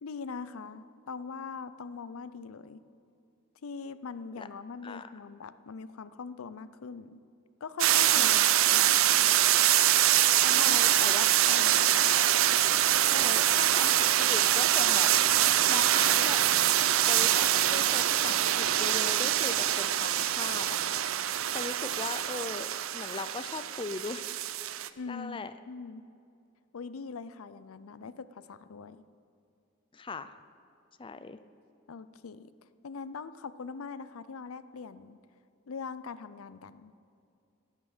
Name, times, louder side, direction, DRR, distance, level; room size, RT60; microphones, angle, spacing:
voice 1, 0.0-2.8 3.6-7.2 7.6-9.4 10.4-10.8 11.2-12.0 25.0-26.0 26.7-29.0 31.9-32.5 32.8-35.2 35.7-36.9, left 5 dB, 85° left, 14 dB, 0.5 m, -42 dB
voice 2, 4.8-5.2 8.1-8.5 10.5-11.6 11.9-12.1 13.0-15.1 15.4-16.4 17.0-24.2 25.1-25.5 29.9-30.3 31.0-31.4, left 4 dB, 25° left, 11 dB, 0.4 m, -40 dB
sound 1, 7.8-24.9, right 12 dB, 75° right, 0.5 m, -24 dB
16.0 x 9.0 x 6.6 m, 2.5 s
head